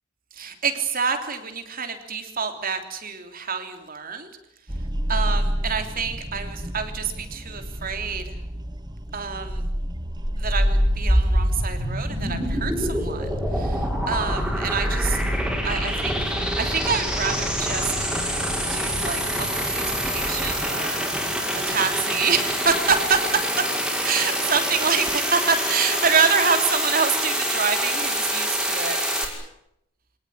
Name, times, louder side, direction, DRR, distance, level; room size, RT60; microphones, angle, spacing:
voice 1, 0.3-4.3 5.1-8.4 9.1-9.7 10.4-15.2 15.6-18.1 18.7-21.1 21.7-23.2 24.0-29.0, right 5 dB, 45° right, 7 dB, 3.3 m, -27 dB
sound 1, 4.7-20.6, equal, 20° right, 1.3 m, -31 dB
sound 2, 10.1-29.3, equal, 5° right, 5.6 m, -25 dB
26.5 x 19.0 x 10.0 m, 0.79 s
head